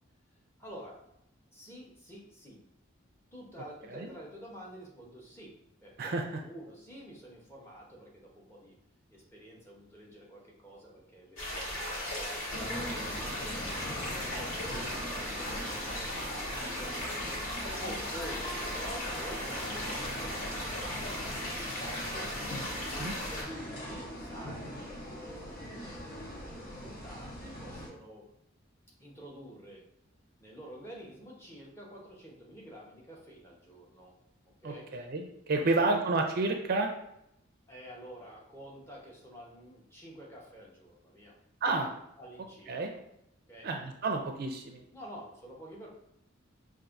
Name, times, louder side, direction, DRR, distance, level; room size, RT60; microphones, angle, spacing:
voice 1, 0.6-1.0 1.5-2.6 3.3-5.6 5.8-8.7 9.1-14.2 15.0-16.3 16.8-22.9 23.2-28.3 29.0-29.8 30.4-34.1 34.4-34.9 35.6-36.0 37.7-41.4 42.2-43.0 43.5-43.7 44.9-45.9, equal, 15° left, -3 dB, 0.9 m, -49 dB
sound 1, 11.4-23.4, left 1 dB, 85° left, 1.4 m, -37 dB
sound 2, 12.5-27.9, equal, 50° left, 1.1 m, -42 dB
voice 2, 14.7-15.2 23.0-23.2 34.6-36.9 41.6-41.9 42.7-42.9 43.6-44.8, right 3 dB, 50° right, 3 dB, 0.4 m, -31 dB
5.3 x 2.5 x 2.5 m, 0.79 s
head